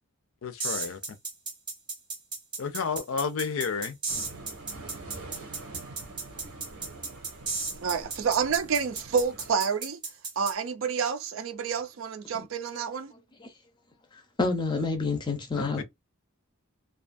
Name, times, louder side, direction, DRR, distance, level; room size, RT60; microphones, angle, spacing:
voice 1, 0.4-1.0 2.6-4.0 15.5-15.8, left 5 dB, 70° left, 0.4 m, -31 dB
sound 1, 0.6-10.5, right 4 dB, 20° right, 0.6 m, -34 dB
sound 2, 4.1-9.5, right 2 dB, 90° right, 0.9 m, -45 dB
voice 2, 7.8-10.0 10.4-13.1, right 6 dB, 70° right, 0.4 m, -28 dB
voice 3, 14.4-15.8, left 3 dB, 20° left, 0.5 m, -28 dB
2.5 x 2.3 x 2.5 m
head